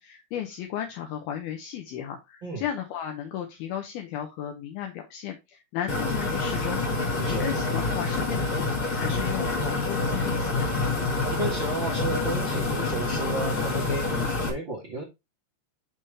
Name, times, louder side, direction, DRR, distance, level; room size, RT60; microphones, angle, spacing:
voice 1, 0.0-10.7, left 10 dB, 75° left, 2.5 m, -35 dB
sound 1, 5.9-14.5, left 3 dB, 45° left, 1.7 m, -27 dB
voice 2, 7.1-7.5 11.3-15.0, right 2 dB, 90° right, 1.0 m, -33 dB
11.0 x 3.7 x 3.2 m
omnidirectional pair, 5.2 m